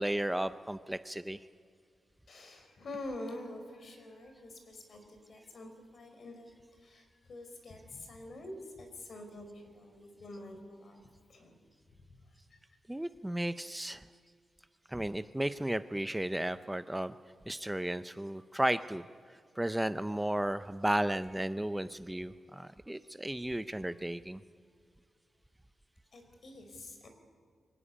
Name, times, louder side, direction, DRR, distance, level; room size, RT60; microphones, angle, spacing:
voice 1, 0.0-1.4 12.9-14.0 14.9-17.2 17.5-19.0 19.6-24.4, right 1 dB, 5° right, 12 dB, 0.5 m, -34 dB
voice 2, 2.3-11.6 12.1-12.6 26.1-27.1, left 1 dB, 55° left, 6 dB, 4.3 m, -47 dB
24.5 x 15.5 x 9.9 m, 2.2 s
wide cardioid pair, 130°, 0 cm